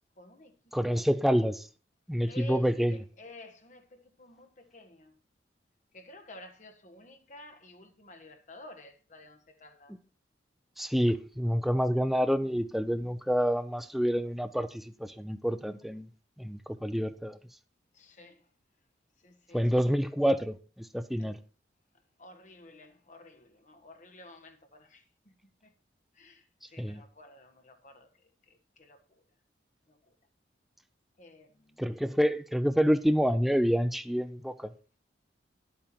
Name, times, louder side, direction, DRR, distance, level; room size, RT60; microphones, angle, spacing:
voice 1, 0.2-0.5 0.9-1.0 2.3-2.6 2.9-5.1 5.9-9.9 17.9-18.4 19.2-19.8 21.2-21.3 22.2-25.3 26.1-28.1 28.5-29.2 29.9-30.0 31.2-31.8, equal, 45° left, 1.5 m, -51 dB
voice 2, 0.7-1.7 2.1-3.0 10.8-16.1 16.4-17.4 19.5-21.4 26.8-27.0 31.8-34.7, equal, ahead, 0.6 m, -28 dB
11.0 x 8.8 x 4.4 m
head